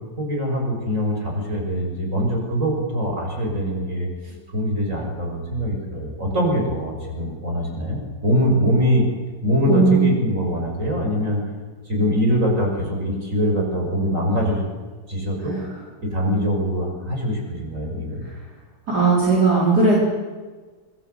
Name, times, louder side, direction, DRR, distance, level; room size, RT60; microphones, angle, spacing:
voice 1, 0.2-9.0 9.4-11.4 11.8-14.7 15.1-15.6 16.0-18.2, equal, 40° right, 0 dB, 6.8 m, -23 dB
voice 2, 9.6-10.0 18.9-20.0, right 4 dB, 55° right, -5 dB, 5.1 m, -17 dB
25.5 x 20.5 x 8.3 m, 1.4 s
omnidirectional pair, 2.0 m